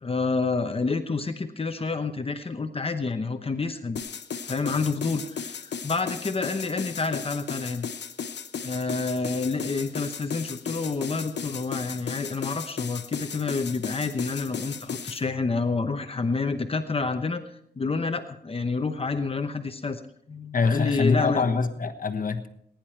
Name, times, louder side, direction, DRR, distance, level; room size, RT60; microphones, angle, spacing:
voice 1, 0.0-4.0 4.5-7.9 8.6-20.0 20.3-21.5, left 4 dB, 35° left, 7 dB, 0.9 m, -28 dB
sound 1, 4.0-15.2, left 6 dB, 85° left, 1.0 m, -35 dB
voice 2, 20.5-22.5, left 4 dB, 50° left, 7 dB, 1.2 m, -24 dB
20.0 x 10.5 x 4.5 m, 0.72 s
wide cardioid pair, 145°, 18 cm